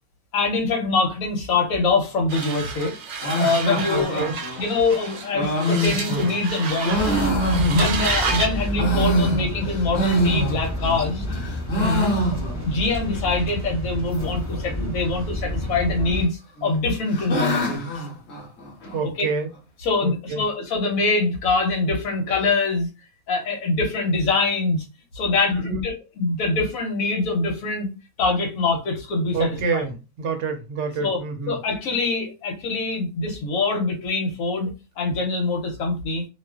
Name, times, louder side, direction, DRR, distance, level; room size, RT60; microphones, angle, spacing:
voice 1, 0.3-2.9 3.4-4.2 4.6-7.1 7.7-11.2 12.6-18.1 19.0-19.3 19.8-22.9 23.3-24.8 25.1-27.9 28.2-29.9 31.0-31.2 31.5-36.3, left 3 dB, 80° left, 0 dB, 1.1 m, -24 dB
sound 1, 2.3-8.6, right 5 dB, 80° right, 0.4 m, -30 dB
sound 2, 3.2-8.2 8.6-11.0 11.3-12.8 13.1-13.2 13.4-13.5 14.1-14.6 15.6-16.2 16.6-19.0, equal, 55° left, 1.0 m, -26 dB
voice 2, 3.9-4.4 7.6-8.0 11.8-12.2 18.9-19.5 20.0-20.4 25.5-25.8 29.3-31.6, right 2 dB, 65° right, 5 dB, 0.8 m, -26 dB
sound 3, 6.9-16.2, equal, 15° left, 1.0 m, -29 dB
2.4 x 2.4 x 2.3 m, 0.28 s
omnidirectional pair, 1.4 m